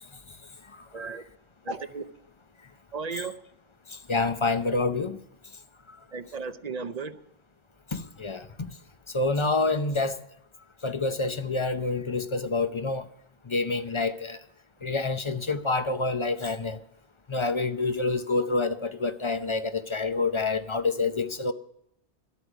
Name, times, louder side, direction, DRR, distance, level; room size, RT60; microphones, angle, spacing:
voice 1, 0.9-1.2 1.6-2.0 2.9-3.3 6.1-7.2, right 5 dB, 45° right, 0.7 m, -35 dB
voice 2, 3.9-5.2 7.9-8.7 9.1-10.2 10.8-13.1 13.5-14.4 14.8-16.8 17.3-21.5, left 3 dB, 30° left, 0.6 m, -27 dB
12.0 x 8.4 x 8.0 m
omnidirectional pair, 1.1 m